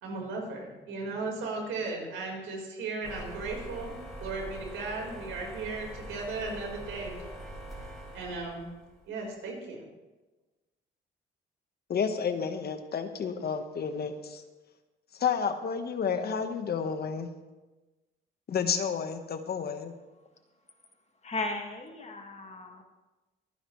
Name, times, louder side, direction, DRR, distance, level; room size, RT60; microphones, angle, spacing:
voice 1, 0.0-7.2 8.1-8.7 9.1-9.8, right 3 dB, 85° right, 0 dB, 4.3 m, -36 dB
sound 1, 3.0-9.0, right 1 dB, ahead, 4.7 m, -43 dB
voice 2, 11.9-14.4 15.2-17.3 18.5-19.9, left 6 dB, 50° left, 8 dB, 1.2 m, -31 dB
voice 3, 21.2-22.8, left 2 dB, 35° left, 4 dB, 1.8 m, -36 dB
24.5 x 9.9 x 3.1 m, 1.2 s
cardioid pair, 90°, 20 cm